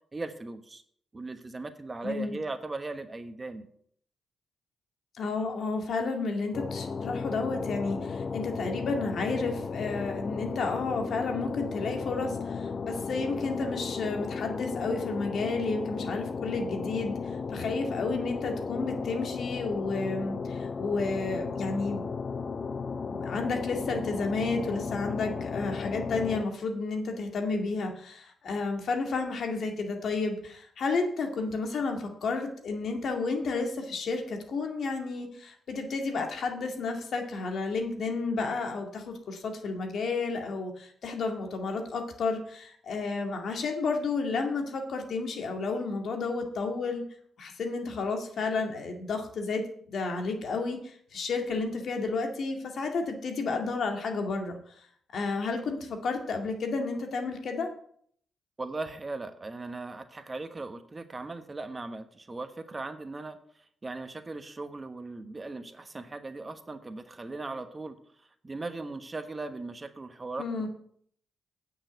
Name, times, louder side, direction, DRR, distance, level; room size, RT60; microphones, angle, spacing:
voice 1, 0.1-0.8 1.1-3.7 58.6-70.4, right 3 dB, 30° right, 9 dB, 1.2 m, -38 dB
voice 2, 2.0-2.4 5.2-22.1 23.1-47.0 47.4-54.8 55.1-57.7 70.4-70.7, left 3 dB, 65° left, 4 dB, 2.1 m, -31 dB
sound 1, 6.5-26.4, left 5 dB, 45° left, 0.6 m, -35 dB
9.2 x 5.8 x 7.9 m, 0.63 s
supercardioid pair, 60°, 0 cm